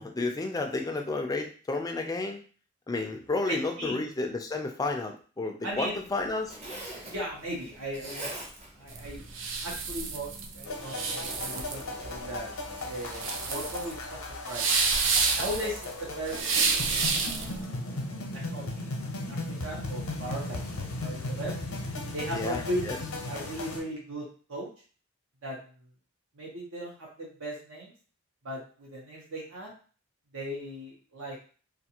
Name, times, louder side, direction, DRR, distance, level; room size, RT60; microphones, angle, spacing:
voice 1, 0.0-2.4 2.9-6.6 22.3-23.0, left 3 dB, 15° left, 3 dB, 0.4 m, -31 dB
voice 2, 3.5-4.0 5.6-6.0 7.1-8.3 8.7-9.3 9.6-12.5 12.8-14.2 14.4-14.7 15.3-16.4 16.9-21.6 22.1-23.0 23.3-24.7 25.4-25.7 26.3-27.9 28.4-29.7 30.3-31.4, right 1 dB, 75° right, -3 dB, 0.9 m, -37 dB
Zipper (clothing), 5.7-13.9, right 1 dB, 30° right, 0.7 m, -46 dB
sound 1, 8.9-17.6, right 5 dB, 60° right, 0.4 m, -29 dB
sound 2, 10.7-23.8, left 2 dB, 85° left, 0.7 m, -37 dB
2.5 x 2.5 x 2.8 m, 0.39 s
head